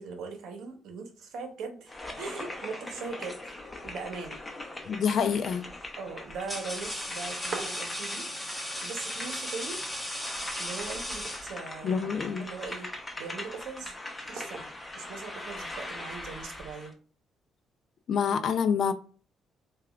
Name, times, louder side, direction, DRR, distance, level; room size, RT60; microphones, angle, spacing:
voice 1, 0.0-3.5 3.8-4.4 6.0-8.4 8.8-9.8 10.6-12.9 13.2-13.9 14.3-14.7 14.9-16.9, right 4 dB, 80° right, 0.8 m, -40 dB
sound 1, 1.9-16.9, left 1 dB, 20° left, 0.7 m, -42 dB
sound 2, 4.8-5.2 6.0-11.9, equal, 5° left, 1.1 m, -37 dB
voice 2, 4.9-5.6 11.8-12.4 18.1-18.9, left 7 dB, 60° left, 0.4 m, -27 dB
sound 3, 7.0-8.5 8.9-9.0 9.1-10.0 10.4-10.5 11.0-11.8 12.5-13.2 14.4-14.9 16.0-16.6, right 4 dB, 55° right, 0.5 m, -43 dB
4.7 x 2.3 x 2.4 m
cardioid pair, 90°, 0 cm